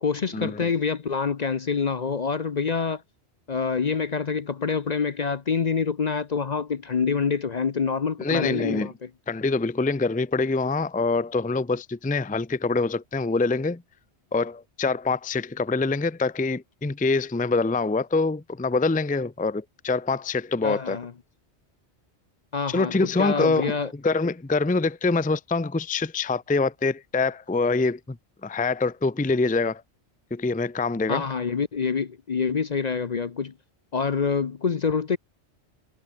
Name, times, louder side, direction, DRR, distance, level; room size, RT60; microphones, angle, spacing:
voice 1, 0.0-3.0 3.5-9.1 20.6-21.1 22.5-22.9 23.2-23.9 31.1-33.5 33.9-35.2, left 5 dB, 45° left, 0.7 m, -26 dB
voice 2, 8.2-8.9 9.3-13.8 14.3-21.0 22.7-28.2 28.4-29.8 30.3-31.3, left 3 dB, 10° left, 0.5 m, -25 dB
omnidirectional pair, 1.2 m